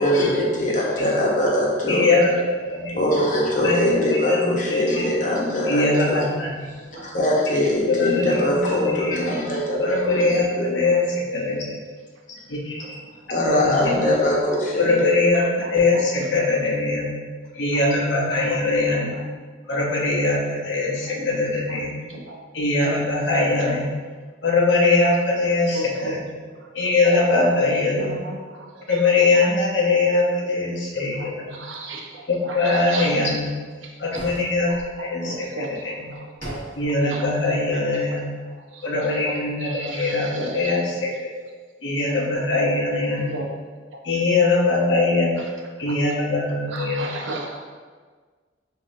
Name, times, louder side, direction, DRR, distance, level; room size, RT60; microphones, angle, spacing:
voice 1, 0.0-2.1 2.9-6.3 7.0-10.7 12.3-12.4 13.3-15.2, left 1 dB, 45° left, -4 dB, 1.0 m, -22 dB
voice 2, 1.9-2.3 2.7-3.0 3.6-5.2 5.7-6.7 7.9-9.3 9.8-11.8 12.5-12.9 13.6-13.7 14.8-17.1 17.5-19.1 19.7-21.9 22.5-23.9 24.4-26.2 26.7-28.1 28.9-31.6 32.4-33.5 34.0-34.7 35.0-36.1 36.8-38.3 38.8-41.1 41.8-43.4 44.0-45.3 45.8-47.1, left 3 dB, 75° left, -2 dB, 0.9 m, -22 dB
voice 3, 6.9-7.4 9.5-9.6 12.8-12.9 13.2-13.3 13.8-13.9 15.6-16.3 17.7-18.0 18.5-19.2 21.0-21.4 21.7-21.8 22.1-22.4 22.8-23.0 23.6-23.8 25.7-26.1 26.4-26.7 27.3-27.5 28.0-29.0 29.3-29.5 31.1-33.2 33.8-34.2 34.7-36.7 37.0-37.3 37.7-37.8 38.1-38.9 39.2-40.8 42.6-43.5 43.9-44.0 44.5-44.6 45.1-45.5 45.9-46.0 46.7-47.6, right 2 dB, 85° right, 0 dB, 0.7 m, -36 dB
sound 1, 34.1-34.9 36.4-36.9, right 1 dB, 50° right, 1.2 m, -37 dB
6.4 x 2.7 x 2.7 m, 1.5 s
head